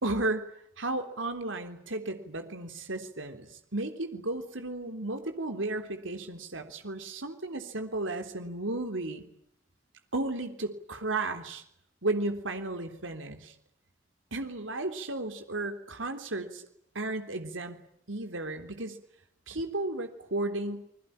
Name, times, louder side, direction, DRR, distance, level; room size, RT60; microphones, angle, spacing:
voice 1, 0.0-0.5 0.8-9.2 10.1-11.6 12.0-13.6 14.3-16.7 16.9-17.8 18.1-19.0 19.5-20.8, right 2 dB, 85° right, 7 dB, 3.6 m, -34 dB
29.0 x 21.5 x 8.9 m, 0.73 s
head